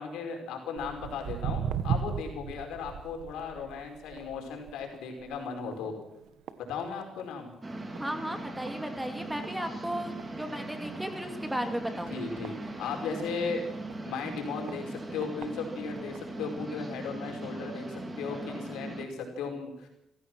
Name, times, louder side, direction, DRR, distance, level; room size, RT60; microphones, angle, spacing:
voice 1, 0.0-5.9 6.7-7.5 9.6-9.7 12.1-13.6 14.0-19.9, left 5 dB, 90° left, 3 dB, 5.0 m, -36 dB
Walk footsteps, 0.8-7.4 7.7-8.1 8.7-8.8 9.4-9.5 9.9-10.0 10.2-10.3 10.9-11.0 11.7-13.3 13.9-14.0 14.7-14.8 15.2-15.5 16.2-16.3, right 8 dB, 85° right, 1.4 m, -36 dB
sound 1, 7.6-19.1, right 2 dB, 25° right, 3.9 m, -39 dB
voice 2, 8.0-12.1, equal, 5° right, 6 dB, 2.6 m, -35 dB
26.0 x 15.5 x 6.3 m, 0.85 s
cardioid pair, 90°, 0 cm